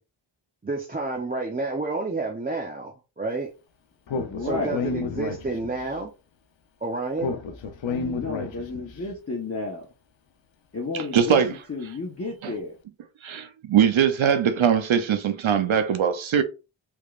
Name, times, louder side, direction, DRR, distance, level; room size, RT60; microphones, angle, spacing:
voice 1, 0.6-3.5 4.4-6.1 6.8-7.3, right 3 dB, 20° right, 0.6 m, -30 dB
Speech, 4.1-5.9 7.2-8.9, left 4 dB, 65° left, 0.7 m, -30 dB
voice 2, 4.1-4.8 8.2-9.9 10.7-11.4 11.7-12.8, left 3 dB, 30° left, 0.9 m, -32 dB
voice 3, 10.9-11.5 12.4-12.5 13.2-16.4, right 8 dB, 70° right, 0.7 m, -21 dB
3.5 x 3.0 x 2.4 m
wide cardioid pair, 60°, 49 cm